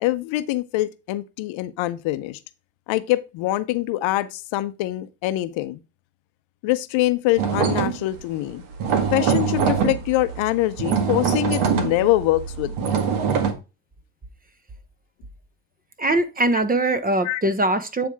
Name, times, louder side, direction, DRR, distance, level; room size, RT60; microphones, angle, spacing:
voice 1, 0.0-2.4 2.9-5.8 6.6-8.6 9.1-13.0 17.2-17.4, left 16 dB, 65° left, 0.8 m, -24 dB
sound 1, 7.4-8.2 8.5-13.5, right 6 dB, 75° right, 1.6 m, -23 dB
voice 2, 16.0-18.1, right 2 dB, 15° right, 1.0 m, -21 dB
8.5 x 3.5 x 4.6 m
supercardioid pair, 75°, 50 cm